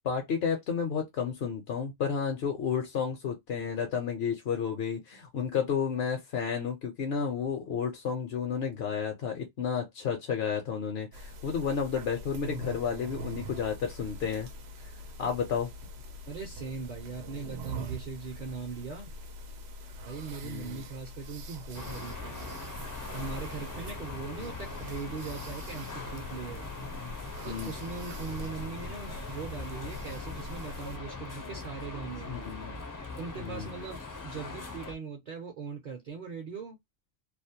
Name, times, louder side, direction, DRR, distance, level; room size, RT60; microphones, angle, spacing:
voice 1, 0.0-14.5 15.2-15.7 20.4-20.8 24.4-24.5 27.5-27.7 32.3-32.7 33.4-33.7, left 7 dB, 80° left, 0.9 m, -31 dB
sound 1, 11.1-31.0, equal, 90° right, 0.8 m, -43 dB
voice 2, 16.3-19.1 20.1-22.6 23.1-26.7 27.4-32.4 33.2-36.8, right 5 dB, 50° right, 0.7 m, -40 dB
sound 2, 21.7-34.9, left 3 dB, 30° left, 0.3 m, -41 dB
2.5 x 2.0 x 2.7 m
omnidirectional pair, 1.0 m